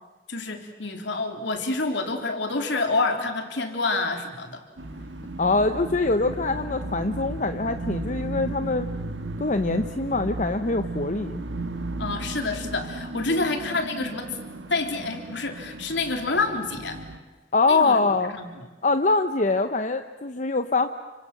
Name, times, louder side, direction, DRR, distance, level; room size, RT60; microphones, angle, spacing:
voice 1, 0.3-4.6 12.0-14.4 14.7-17.0 17.7-18.7, left 3 dB, 75° left, 4 dB, 3.4 m, -28 dB
sound 1, 4.8-17.2, right 2 dB, 85° right, 1.6 m, -35 dB
voice 2, 5.4-8.9 9.4-11.4 17.5-18.3 18.8-20.9, left 3 dB, 40° left, 8 dB, 0.8 m, -24 dB
30.0 x 25.5 x 7.5 m, 1.2 s
head